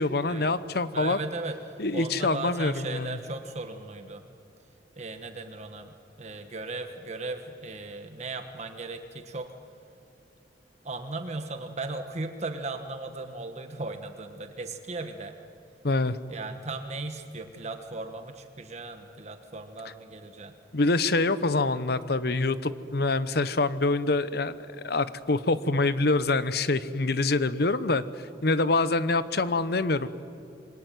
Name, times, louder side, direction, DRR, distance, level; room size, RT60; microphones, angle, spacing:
voice 1, 0.0-1.2 1.8-3.2 15.8-16.2 20.7-24.6 24.8-28.0 28.4-30.1, left 3 dB, 60° left, 14 dB, 1.0 m, -25 dB
voice 2, 0.9-4.2 5.0-9.6 10.8-15.4 16.3-20.6, right 3 dB, 40° right, 6 dB, 1.4 m, -37 dB
27.0 x 23.0 x 9.3 m, 2.6 s
head